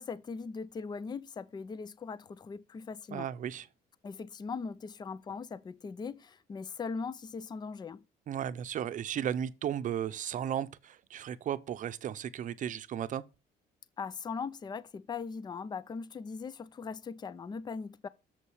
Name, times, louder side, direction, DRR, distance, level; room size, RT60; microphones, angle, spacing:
voice 1, 0.0-3.3 4.0-8.0 14.0-18.1, left 5 dB, 25° left, 0.5 m, -40 dB
voice 2, 3.1-3.7 8.3-13.2, right 9 dB, 50° right, 0.7 m, -35 dB
7.2 x 5.4 x 4.8 m
cardioid pair, 110°, 17 cm